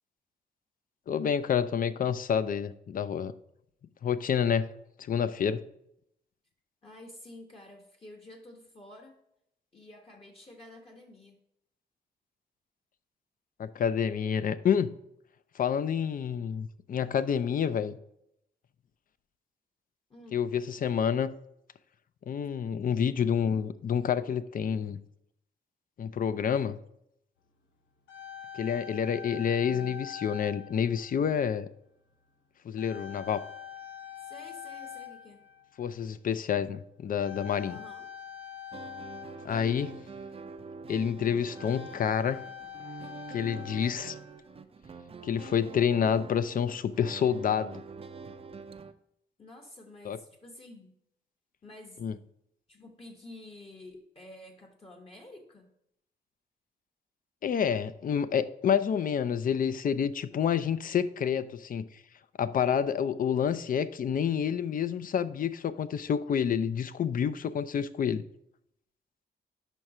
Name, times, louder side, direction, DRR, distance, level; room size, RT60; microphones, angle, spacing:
voice 1, 1.1-3.3 4.0-4.7 5.0-5.6 13.6-15.0 15.5-17.9 20.3-21.3 22.3-25.0 26.0-26.8 28.5-31.7 32.6-33.4 35.8-37.8 39.4-40.0 40.9-42.4 43.3-44.2 45.2-47.8 50.0-50.2 52.0-52.1 57.4-61.8 62.4-68.2, left 8 dB, 50° left, 14 dB, 0.4 m, -28 dB
voice 2, 6.8-9.2 9.7-11.4 20.1-20.4 34.2-35.4 37.6-38.1 49.4-50.9 51.6-52.0 52.7-55.7, left 1 dB, 30° left, 2 dB, 1.0 m, -50 dB
sound 1, 27.6-27.7 27.9-31.4 32.1-32.3 32.8-36.1 37.2-40.2 41.0-41.1 41.4-44.5, left 9 dB, 80° left, 0.9 m, -45 dB
sound 2, 38.7-48.9, right 4 dB, 30° right, 0.5 m, -45 dB
5.4 x 4.6 x 4.9 m, 0.76 s
cardioid pair, 85°, 19 cm